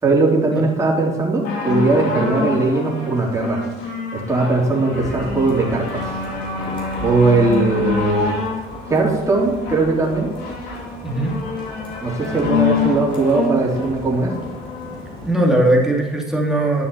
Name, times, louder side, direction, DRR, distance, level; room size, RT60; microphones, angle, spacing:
voice 1, 0.0-3.6 4.1-6.1 7.0-8.3 8.9-10.3 12.0-14.3, right 3 dB, 20° right, -3 dB, 3.8 m, -19 dB
sound 1, 1.4-15.0 15.8-15.9, left 4 dB, 80° left, 3.4 m, -26 dB
sound 2, 4.9-15.3, equal, 30° left, 3.3 m, -37 dB
voice 2, 11.0-11.3 15.2-16.9, right 1 dB, 5° right, -2 dB, 2.8 m, -18 dB
12.0 x 6.5 x 7.1 m, 1.3 s
cardioid pair, 110°, 17 cm